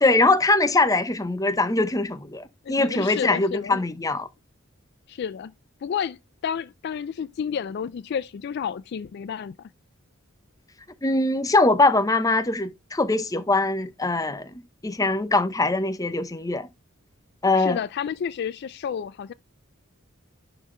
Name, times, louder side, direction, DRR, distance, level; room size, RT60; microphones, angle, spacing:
voice 1, 0.0-4.3 11.0-14.5 14.8-16.7 17.4-17.8, left 2 dB, 15° left, 0.7 m, -22 dB
voice 2, 2.6-3.8 5.1-5.5 5.8-9.7 17.6-19.3, left 7 dB, 50° left, 0.3 m, -31 dB
11.5 x 4.0 x 3.1 m
head